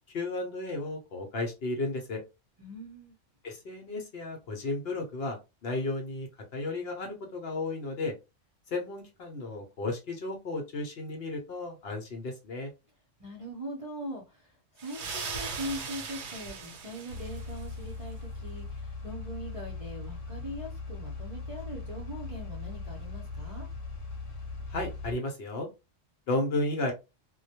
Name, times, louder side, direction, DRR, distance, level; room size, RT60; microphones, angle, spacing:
voice 1, 0.1-2.2 3.4-8.1 8.7-12.7 24.7-25.7 26.3-26.9, left 2 dB, 60° left, 2 dB, 0.8 m, -33 dB
voice 2, 2.6-3.1 13.2-23.7, equal, 35° right, -3 dB, 0.6 m, -41 dB
sound 1, 14.8-17.8, right 5 dB, 65° right, 0.9 m, -39 dB
sound 2, 17.1-25.2, left 3 dB, 85° left, 1.1 m, -39 dB
2.2 x 2.1 x 2.7 m, 0.26 s
omnidirectional pair, 1.3 m